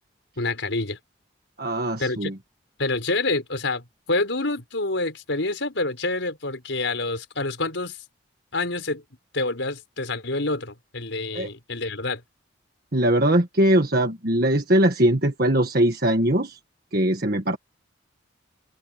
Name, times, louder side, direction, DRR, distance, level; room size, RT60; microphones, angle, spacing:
voice 1, 0.4-1.0 2.0-2.3 2.8-8.0 8.5-9.0 9.3-12.2, left 2 dB, 75° left, 4.7 m, -27 dB
voice 2, 1.6-2.3 11.3-11.5 12.9-16.6 16.9-17.6, right 1 dB, 50° right, 1.7 m, -21 dB
head